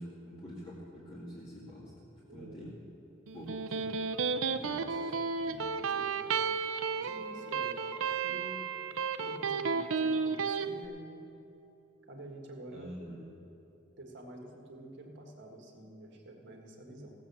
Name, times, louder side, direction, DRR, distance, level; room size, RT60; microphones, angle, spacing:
voice 1, 0.0-2.8 3.3-4.0 4.5-5.7 12.7-13.3, equal, 25° left, -7 dB, 1.9 m, -46 dB
voice 2, 2.3-2.7 5.8-6.5 6.9-8.7 9.2-11.3 12.1-12.9 14.0-17.1, right 1 dB, 60° right, 1 dB, 1.7 m, -48 dB
Electric guitar, 3.3-10.7, right 5 dB, 80° right, 0.5 m, -33 dB
16.0 x 7.4 x 7.0 m, 2.9 s
head